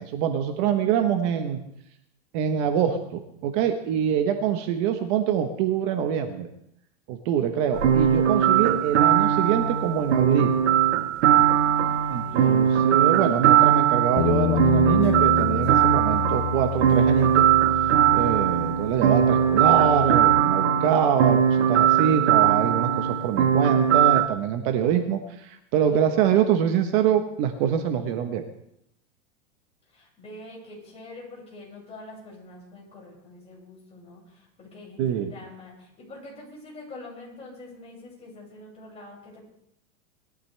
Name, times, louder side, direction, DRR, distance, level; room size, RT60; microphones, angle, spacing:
voice 1, 0.0-1.6 2.3-6.5 7.1-10.6 12.1-17.5 18.1-28.4 35.0-35.3, right 8 dB, 45° right, 6 dB, 1.2 m, -25 dB
sound 1, 7.7-24.2, right 9 dB, 85° right, 1.4 m, -20 dB
voice 2, 11.6-12.7 29.9-39.4, left 2 dB, 15° left, -4 dB, 6.5 m, -45 dB
Bass guitar, 14.2-20.4, left 15 dB, 50° left, 0.7 m, -30 dB
21.0 x 13.0 x 3.4 m, 0.76 s
supercardioid pair, 150°, 35 cm